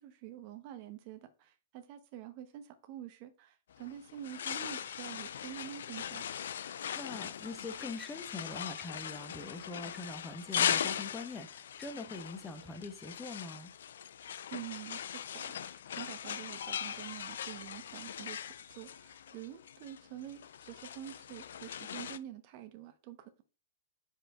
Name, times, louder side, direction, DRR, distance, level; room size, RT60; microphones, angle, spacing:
voice 1, 0.0-6.2 14.5-18.4 18.7-23.4, right 12 dB, 45° right, 1.0 m, -47 dB
sound 1, 3.7-22.2, left 9 dB, 65° left, 0.4 m, -39 dB
voice 2, 6.6-13.7, left 3 dB, 15° left, 1.1 m, -43 dB
5.2 x 4.4 x 4.7 m
figure-of-eight pair, 110°, 0 cm